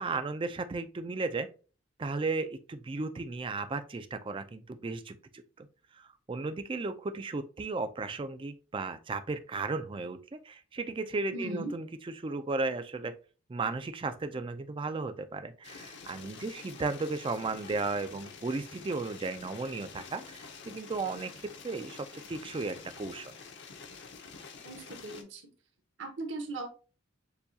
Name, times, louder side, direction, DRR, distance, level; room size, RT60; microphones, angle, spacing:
voice 1, 0.0-1.5 2.0-5.7 5.9-11.9 12.2-13.2 13.5-23.3, right 3 dB, 25° right, 10 dB, 0.4 m, -35 dB
voice 2, 11.3-11.7 24.6-25.4 26.0-26.7, right 2 dB, 65° right, 4 dB, 1.1 m, -38 dB
sound 1, 15.6-25.2, left 5 dB, 60° left, 0.8 m, -48 dB
6.8 x 2.3 x 2.7 m, 0.35 s
head